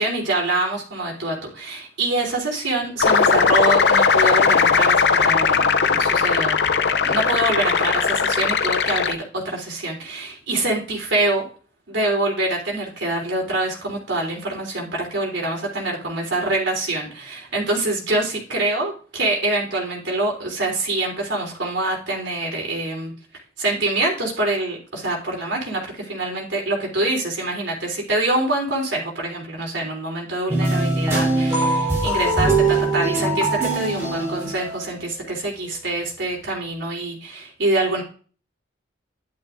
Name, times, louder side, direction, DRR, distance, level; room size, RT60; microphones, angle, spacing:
voice 1, 0.0-6.6 6.8-11.4 11.9-23.1 23.6-38.0, right 2 dB, 85° right, -1 dB, 3.5 m, -25 dB
sound 1, 3.0-9.1, left 5 dB, 65° left, 0.6 m, -18 dB
sound 2, 30.5-35.1, right 2 dB, 15° right, 3.8 m, -22 dB
11.5 x 10.5 x 2.6 m, 0.40 s
head